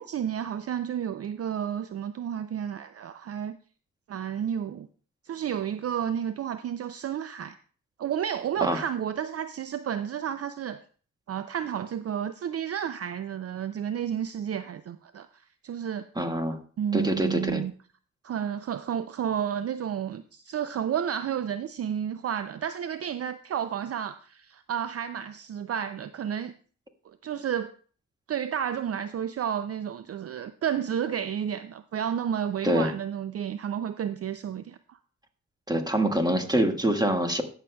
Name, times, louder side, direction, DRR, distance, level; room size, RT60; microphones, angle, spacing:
voice 1, 0.0-3.6 4.1-4.9 5.2-7.6 8.0-10.8 11.3-16.1 16.8-17.7 18.2-26.5 27.1-27.7 28.3-35.0, right 9 dB, 55° right, 0.4 m, -31 dB
voice 2, 16.1-16.6 16.9-17.6 32.6-32.9 35.7-37.4, right 1 dB, 15° right, 1.6 m, -25 dB
17.5 x 6.5 x 2.2 m
cardioid pair, 65°, 30 cm